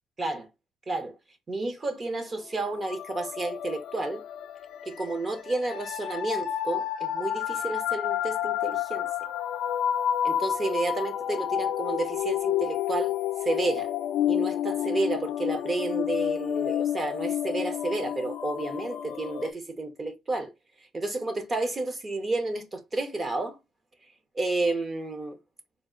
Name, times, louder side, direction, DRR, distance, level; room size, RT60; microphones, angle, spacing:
voice 1, 0.9-1.2 1.5-4.2 4.8-9.1 10.2-13.1 13.4-13.9 14.3-20.5 20.9-23.6 24.3-25.4, right 2 dB, 20° right, 0.6 m, -31 dB
sound 1, 2.7-19.5, left 10 dB, 65° left, 0.4 m, -30 dB
4.0 x 2.4 x 3.7 m
cardioid pair, 180°, 0 cm